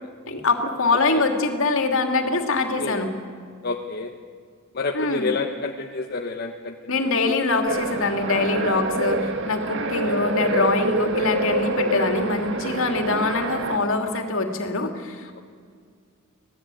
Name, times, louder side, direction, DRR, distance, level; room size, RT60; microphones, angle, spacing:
voice 1, 0.3-3.1 4.9-5.3 6.9-15.4, left 3 dB, 65° left, 5 dB, 2.8 m, -24 dB
voice 2, 3.6-4.1 4.7-6.7 8.6-8.8 10.0-10.2 11.8-12.0, left 3 dB, 50° left, 3 dB, 1.2 m, -29 dB
sound 1, 7.7-13.8, right 2 dB, 60° right, 2.0 m, -26 dB
26.5 x 18.0 x 9.2 m, 2.1 s
head